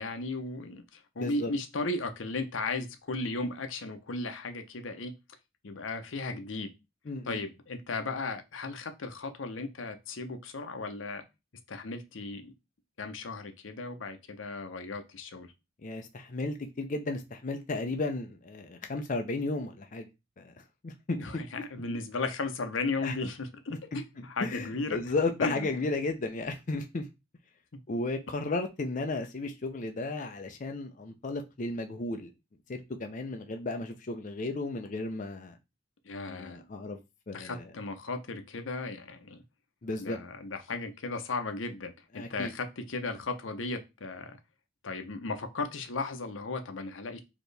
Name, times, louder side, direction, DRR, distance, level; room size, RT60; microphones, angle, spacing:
voice 1, 0.0-5.1 5.6-6.7 7.3-11.2 11.7-12.5 13.0-15.5 21.2-25.0 25.4-25.7 36.0-36.7 37.3-39.4 40.0-41.9 42.3-44.4 44.8-47.2, left 3 dB, 90° left, 0.8 m, -35 dB
voice 2, 1.2-1.5 7.1-7.4 15.8-20.1 20.4-20.5 20.8-21.4 23.0-23.1 23.9-27.1 27.9-32.3 32.7-35.6 36.3-37.0 37.3-37.7 39.8-40.2 42.1-42.5, left 2 dB, 40° left, 0.5 m, -34 dB
4.3 x 2.9 x 3.3 m
head